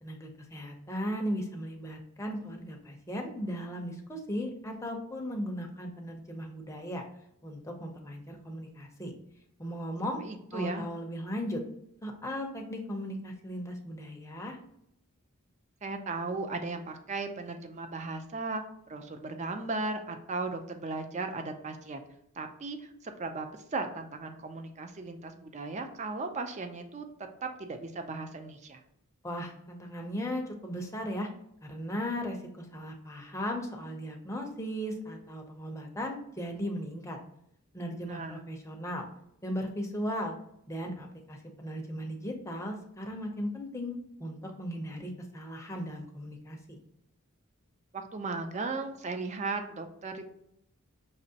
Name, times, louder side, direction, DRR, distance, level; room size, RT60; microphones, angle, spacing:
voice 1, 0.0-7.0 7.4-9.1 9.6-10.2 10.5-11.6 12.0-14.6 29.2-31.3 31.6-37.2 37.7-39.0 39.4-40.3 40.7-46.8, equal, 15° left, 1 dB, 0.6 m, -37 dB
voice 2, 10.2-10.8 15.8-18.6 18.9-22.1 22.4-22.8 23.0-27.0 27.4-28.8 38.1-38.4 47.9-50.3, right 3 dB, 30° right, 6 dB, 0.4 m, -36 dB
5.4 x 3.0 x 2.7 m, 0.76 s
head